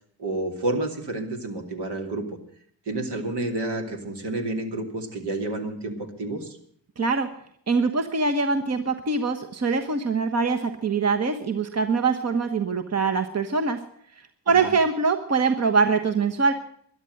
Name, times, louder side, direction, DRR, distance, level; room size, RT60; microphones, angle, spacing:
voice 1, 0.2-2.2 2.9-6.6 14.5-14.7, right 2 dB, 65° right, 3 dB, 2.8 m, -30 dB
voice 2, 7.0-7.3 7.7-13.8 14.5-16.5, right 4 dB, 35° right, 6 dB, 1.2 m, -23 dB
12.5 x 11.0 x 7.8 m, 0.64 s
supercardioid pair, 50°, 44 cm